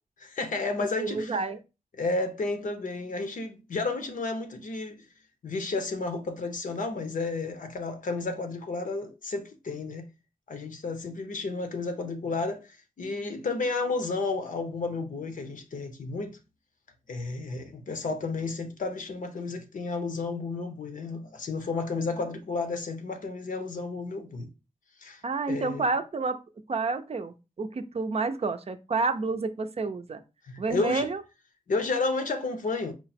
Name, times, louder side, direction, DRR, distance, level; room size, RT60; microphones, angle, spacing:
voice 1, 0.2-1.4 1.9-5.0 5.4-10.1 10.5-16.4 17.1-24.5 25.0-25.2 25.5-25.8 30.5-31.1 31.7-32.9, left 3 dB, 70° left, 0.8 m, -32 dB
voice 2, 1.0-1.6 25.2-26.4 26.7-30.2 30.6-31.2, right 3 dB, 45° right, 0.5 m, -29 dB
4.5 x 2.1 x 4.1 m
cardioid pair, 60°, 14 cm